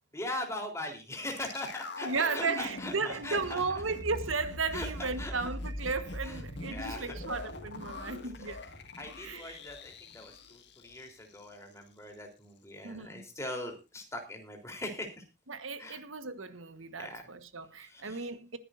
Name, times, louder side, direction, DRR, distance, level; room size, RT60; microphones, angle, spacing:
voice 1, 0.1-3.8 4.7-5.6 6.2-6.4 6.7-7.2 8.0-8.1 8.4-8.5 9.0-15.2 15.8-16.0 17.0-17.2 17.8-18.3, left 1 dB, 15° left, 3.7 m, -41 dB
sound 1, 1.4-11.5 11.8-11.9, left 1 dB, 60° left, 2.0 m, -42 dB
voice 2, 2.0-8.6 9.2-9.6 12.8-13.2 15.5-18.6, right 4 dB, 90° right, 1.4 m, -35 dB
20.5 x 11.0 x 2.6 m
head